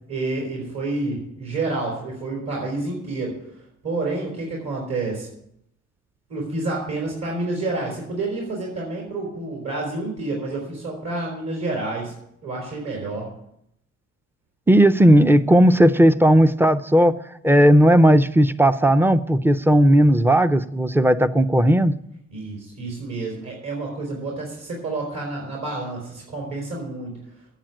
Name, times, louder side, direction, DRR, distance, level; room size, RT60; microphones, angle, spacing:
voice 1, 0.1-3.4 3.8-5.3 6.3-12.1 12.4-13.3 22.3-27.2, right 2 dB, 60° right, -2 dB, 3.9 m, -29 dB
voice 2, 14.7-17.1 17.4-21.9, equal, 5° right, 13 dB, 0.5 m, -15 dB
9.1 x 7.1 x 8.9 m, 0.76 s
cardioid pair, 90°, 30 cm